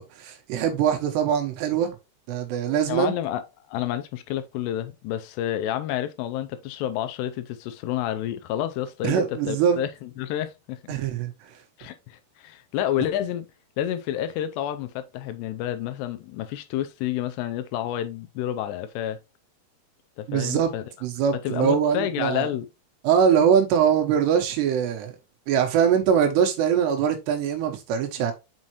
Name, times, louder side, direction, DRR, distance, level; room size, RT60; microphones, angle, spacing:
voice 1, 0.0-2.0 2.3-3.1 9.0-9.8 10.9-11.5 20.3-20.7 21.0-22.5 23.0-25.2 25.5-28.3, right 8 dB, 80° right, 3.1 m, -22 dB
voice 2, 2.9-3.4 3.7-10.9 11.8-13.5 13.8-19.2 20.2-20.8 21.4-22.7, left 11 dB, 85° left, 2.7 m, -29 dB
6.3 x 5.6 x 2.9 m
omnidirectional pair, 4.9 m